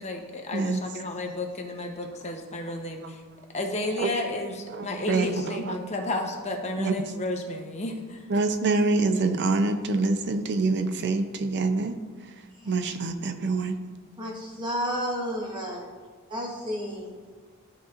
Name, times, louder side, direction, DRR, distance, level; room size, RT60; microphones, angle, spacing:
voice 1, 0.0-3.2 3.5-8.3, left 2 dB, 30° left, 2 dB, 0.9 m, -32 dB
voice 2, 4.7-5.8 6.8-7.0 8.3-12.0 12.7-13.8, right 3 dB, 50° right, 7 dB, 0.5 m, -26 dB
voice 3, 14.2-15.9 16.3-17.3, equal, 20° right, -2 dB, 1.1 m, -32 dB
13.0 x 4.3 x 2.5 m, 1.5 s
head